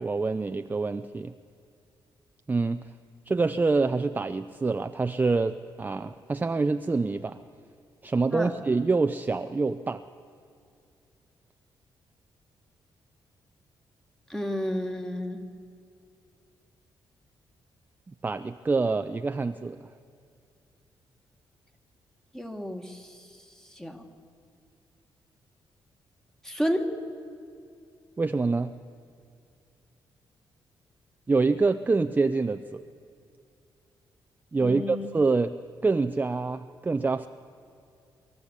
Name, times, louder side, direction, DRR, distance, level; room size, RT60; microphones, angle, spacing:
voice 1, 0.0-1.3 2.5-2.8 3.3-7.4 8.0-10.0 18.2-19.8 28.2-28.8 31.3-32.8 34.5-37.3, right 3 dB, 20° right, 9 dB, 0.5 m, -26 dB
voice 2, 14.3-15.4 22.3-23.2 23.8-24.0 26.4-26.9 34.6-35.1, equal, 5° left, 5 dB, 1.8 m, -31 dB
24.5 x 13.5 x 8.3 m, 2.4 s
cardioid pair, 110°, 9 cm